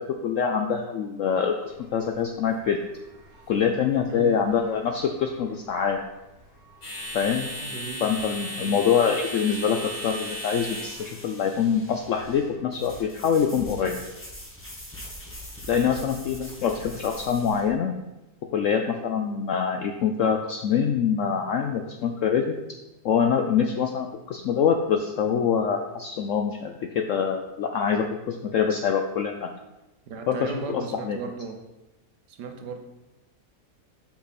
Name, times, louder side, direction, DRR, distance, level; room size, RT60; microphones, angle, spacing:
voice 1, 0.0-1.6 1.9-2.8 3.5-6.0 7.1-7.5 8.0-14.0 15.7-17.9 18.5-22.6 23.0-29.5 30.3-31.2, left 7 dB, 75° left, 4 dB, 0.7 m, -25 dB
sound 1, 1.6-13.0, equal, 55° left, 2.0 m, -39 dB
voice 2, 7.6-8.0 8.6-8.8 15.9-16.1 30.1-31.6 32.3-32.8, right 5 dB, 75° right, 5 dB, 1.5 m, -36 dB
sound 2, 8.3-17.7, equal, 10° left, 0.9 m, -44 dB
6.0 x 5.9 x 4.1 m, 1.0 s
omnidirectional pair, 1.8 m